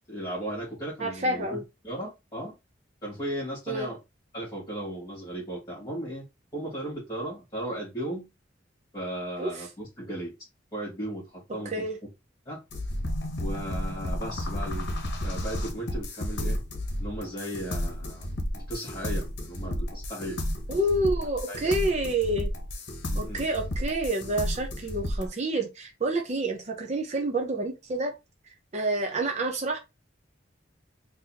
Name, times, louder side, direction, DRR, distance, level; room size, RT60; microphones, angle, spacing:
voice 1, 0.1-1.6 1.8-2.5 3.0-4.0 4.3-6.3 6.5-8.3 8.9-10.3 10.7-11.9 12.5-12.6 13.4-16.6 17.0-18.3 18.5-20.4 21.5-21.7 23.1-23.4, right 1 dB, 20° left, 1.8 m, -36 dB
voice 2, 1.0-1.6 3.7-3.9 9.4-9.6 11.7-12.0 20.7-22.5 23.2-28.1 28.7-29.8, right 2 dB, 35° right, 0.6 m, -28 dB
sound 1, 12.7-25.3, left 1 dB, 60° left, 0.9 m, -32 dB
3.9 x 2.7 x 2.8 m
head